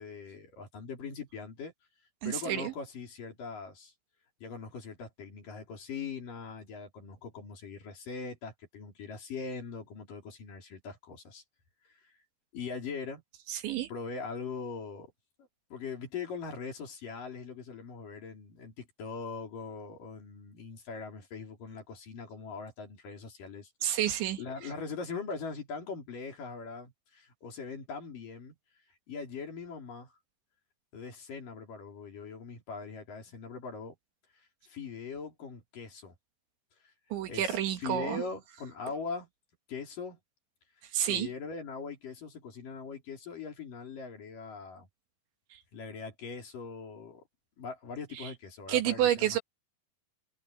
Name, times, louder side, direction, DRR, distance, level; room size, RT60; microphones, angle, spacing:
voice 1, 0.0-1.7 2.3-3.9 4.4-11.4 11.8-12.2 12.5-13.2 13.9-15.1 15.7-23.9 24.4-28.6 29.1-30.2 30.9-34.0 34.7-36.2 36.8-36.9 37.3-39.3 39.7-40.2 41.1-44.9 45.7-47.2 47.6-49.4, left 5 dB, 50° left, 5.2 m, -41 dB
voice 2, 2.2-2.7 13.5-13.9 23.8-24.4 37.1-38.2 40.9-41.3 45.5-45.6 48.1-48.3 48.7-49.4, right 11 dB, 80° right, 4.3 m, -29 dB
omnidirectional pair, 5.3 m